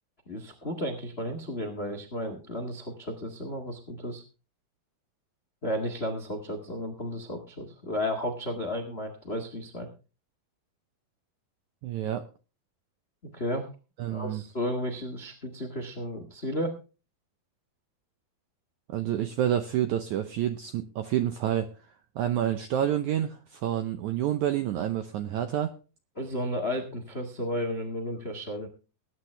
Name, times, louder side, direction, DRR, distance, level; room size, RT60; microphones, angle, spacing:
voice 1, 0.3-4.2 5.6-9.9 13.2-13.7 14.1-16.8 26.2-28.7, left 1 dB, 90° left, 5 dB, 0.5 m, -33 dB
voice 2, 11.8-12.2 14.0-14.4 18.9-21.7 22.1-25.7, right 11 dB, 80° right, 8 dB, 1.7 m, -28 dB
19.5 x 9.4 x 3.2 m, 0.33 s
omnidirectional pair, 4.4 m